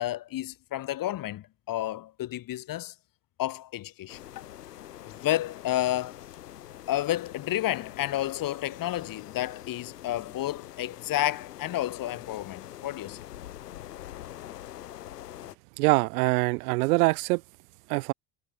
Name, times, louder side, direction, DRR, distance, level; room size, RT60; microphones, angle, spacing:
voice 1, 0.0-2.9 3.4-4.2 5.0-6.2 6.9-13.2, left 14 dB, 45° left, 1.3 m, -31 dB
sound 1, 4.1-15.6, left 12 dB, 85° left, 2.7 m, -44 dB
voice 2, 15.8-17.4 17.9-18.1, right 24 dB, 75° right, 0.6 m, -24 dB
hypercardioid pair, 70°, 46 cm